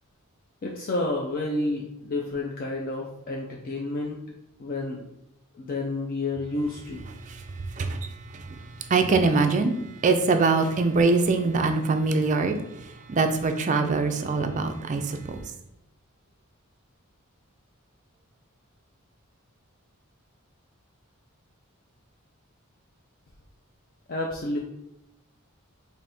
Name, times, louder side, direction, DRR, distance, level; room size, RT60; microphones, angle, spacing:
voice 1, 0.6-4.2 4.6-5.1 5.6-7.1 24.1-24.6, left 2 dB, 40° left, -1 dB, 0.4 m, -30 dB
voice 2, 7.2-9.7 10.0-15.4, right 3 dB, 35° right, 6 dB, 0.3 m, -24 dB
4.1 x 2.6 x 3.4 m, 0.83 s
head